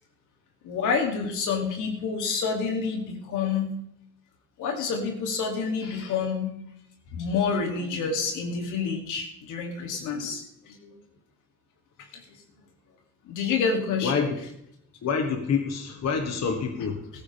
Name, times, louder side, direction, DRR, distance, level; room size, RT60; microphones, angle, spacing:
voice 1, 0.6-3.7 4.6-6.5 7.1-10.9 12.1-12.2 13.2-14.3, left 5 dB, 90° left, 2 dB, 2.7 m, -28 dB
voice 2, 15.0-17.1, left 6 dB, 60° left, 4 dB, 1.6 m, -27 dB
15.0 x 13.5 x 3.5 m, 0.77 s
cardioid pair, 90°, 30 cm